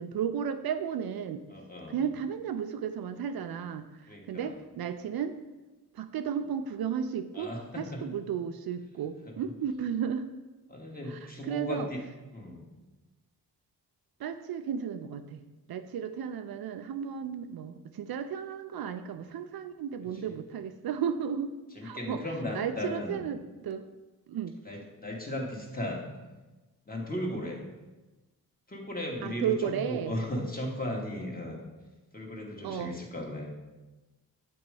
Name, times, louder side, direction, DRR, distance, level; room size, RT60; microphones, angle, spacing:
voice 1, 0.0-1.4 1.9-5.3 5.9-7.5 7.8-10.3 11.1-11.9 14.2-15.4 15.7-21.5 21.8-22.2 22.5-23.8 24.3-24.6 29.2-30.2 32.6-32.9, right 8 dB, 70° right, 8 dB, 0.5 m, -34 dB
voice 2, 1.5-2.0 4.1-4.5 7.3-8.0 9.3-9.4 10.7-12.0 12.3-12.7 20.2-20.3 21.7-23.2 24.6-26.1 26.8-27.7 28.7-31.6 32.1-33.5, left 1 dB, 20° left, -1 dB, 1.6 m, -36 dB
7.8 x 3.0 x 4.8 m, 1.1 s
cardioid pair, 50°, 39 cm